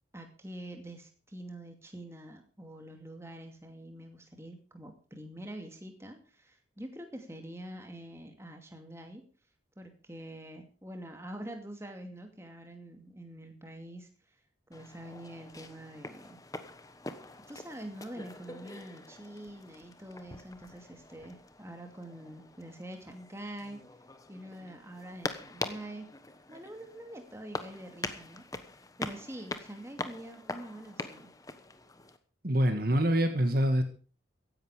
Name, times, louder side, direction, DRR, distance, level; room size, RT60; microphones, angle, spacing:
voice 1, 0.1-9.3 9.8-14.1 14.7-16.4 17.5-23.8 24.3-26.1 26.5-28.4 29.0-31.3, right 1 dB, 15° right, 4 dB, 2.4 m, -45 dB
sound 1, 14.7-32.2, left 2 dB, 20° left, 1.1 m, -44 dB
voice 2, 32.4-33.8, equal, 50° right, 7 dB, 1.8 m, -25 dB
16.0 x 10.5 x 4.9 m, 0.39 s
head